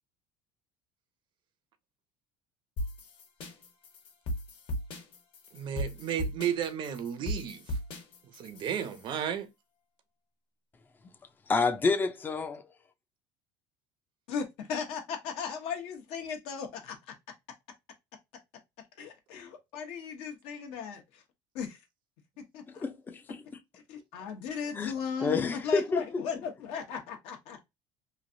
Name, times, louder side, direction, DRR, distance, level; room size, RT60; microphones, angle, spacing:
sound 1, 2.8-9.1, equal, 55° left, 1.2 m, -37 dB
voice 1, 5.5-7.8 8.2-9.5, right 9 dB, 50° right, 0.6 m, -33 dB
voice 2, 11.5-12.6 22.8-23.4 24.7-24.9 25.2-26.2, left 4 dB, 20° left, 0.5 m, -29 dB
voice 3, 14.3-17.2 19.0-21.2 21.5-21.8 22.4-22.8 23.7-27.6, left 6 dB, 75° left, 1.0 m, -37 dB
3.1 x 2.5 x 2.6 m
cardioid pair, 120°, 10 cm